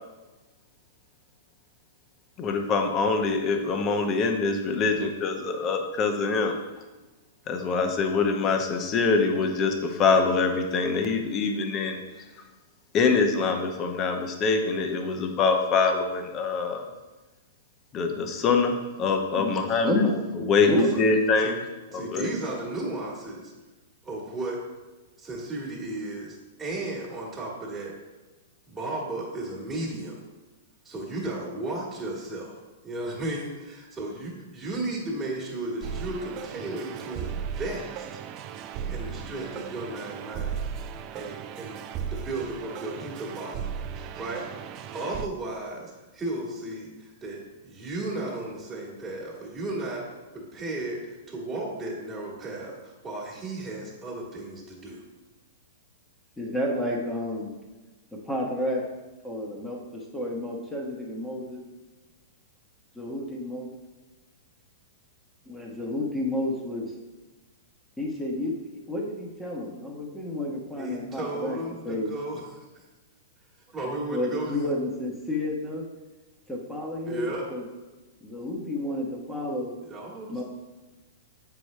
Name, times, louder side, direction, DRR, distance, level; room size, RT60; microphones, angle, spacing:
voice 1, 2.4-6.6 7.5-12.0 12.9-16.9 17.9-20.0 20.4-21.6 21.9-22.3, left 4 dB, 30° left, 4 dB, 0.9 m, -24 dB
voice 2, 19.4-20.1 20.6-20.9 56.4-57.5 58.3-58.8 59.2-61.6 62.9-63.7 65.5-66.9 68.0-68.5 68.9-71.6 71.8-72.1 73.9-75.9 76.5-77.6 78.2-79.8 80.3-80.4, left 1 dB, 5° left, -2 dB, 1.2 m, -30 dB
voice 3, 20.6-21.0 21.4-21.6 21.9-23.5 24.0-24.6 25.2-27.9 28.7-30.2 30.8-32.6 32.8-38.2 38.9-41.8 42.1-43.7 44.1-44.5 44.9-50.0 50.3-55.0 70.8-72.5 73.7-74.5 77.0-77.5 79.8-80.4, right 2 dB, 15° right, -7 dB, 1.7 m, -34 dB
sound 1, 35.8-45.3, right 7 dB, 40° right, 0.4 m, -36 dB
7.6 x 4.8 x 3.2 m, 1.1 s
hypercardioid pair, 115°, 0 cm